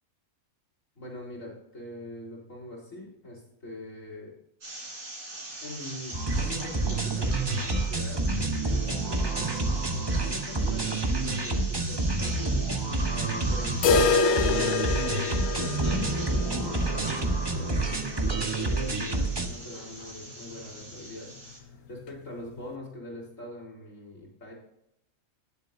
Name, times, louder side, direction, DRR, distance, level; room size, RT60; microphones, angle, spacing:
voice 1, 0.9-4.3 5.6-12.8 13.1-14.9 15.4-17.9 18.2-24.5, left 1 dB, 65° left, -3 dB, 4.2 m, -43 dB
sound 1, 4.6-21.6, right 1 dB, 75° right, 4.0 m, -41 dB
sound 2, 6.1-19.5, right 2 dB, 20° right, 1.0 m, -28 dB
sound 3, 13.8-19.6 19.9-20.0 20.4-20.5 21.0-21.1 22.0-22.1, left 4 dB, 90° left, 1.3 m, -28 dB
18.5 x 7.4 x 2.6 m, 0.76 s
omnidirectional pair, 1.5 m